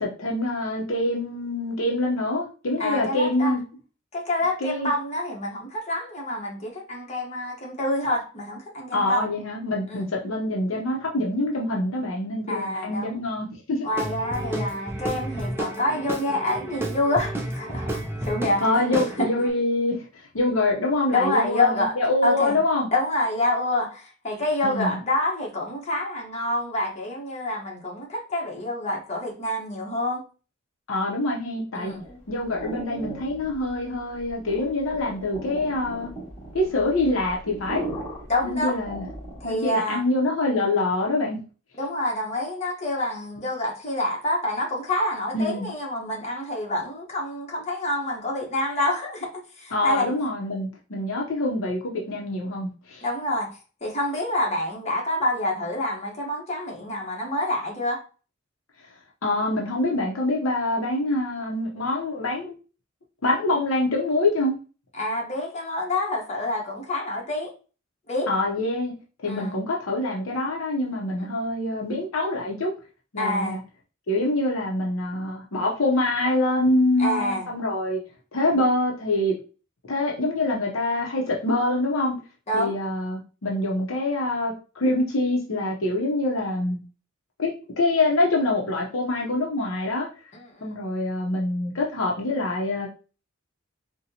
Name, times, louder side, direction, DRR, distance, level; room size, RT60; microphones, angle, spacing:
voice 1, 0.0-3.6 4.6-4.9 8.9-13.9 18.6-22.9 24.6-25.0 30.9-31.9 32.3-36.1 36.5-37.9 38.4-39.0 39.4-41.4 45.3-45.7 49.7-53.0 59.2-62.5 63.2-64.5 68.3-68.9 69.2-72.7 73.1-73.6 74.1-78.0 78.3-79.4 79.9-82.2 82.5-86.8 87.4-90.1 90.6-92.9, left 2 dB, 70° left, 0.7 m, -25 dB
voice 2, 2.8-3.5 4.1-9.3 9.9-10.1 12.5-13.2 13.8-18.6 19.2-19.3 21.1-21.9 22.2-22.6 22.9-30.2 31.7-32.0 38.3-38.8 39.4-40.0 41.8-50.1 53.0-53.5 53.8-58.0 64.9-67.5 68.1-68.3 69.3-69.6 71.2-71.3 73.2-73.6 77.0-77.5 82.5-82.7 90.3-90.8, left 1 dB, 30° left, 1.0 m, -27 dB
Guitar / Drum, 13.9-19.5, right 1 dB, 10° right, 0.5 m, -31 dB
sound 1, 31.8-39.6, right 2 dB, 10° left, 1.8 m, -38 dB
4.1 x 2.2 x 2.7 m
head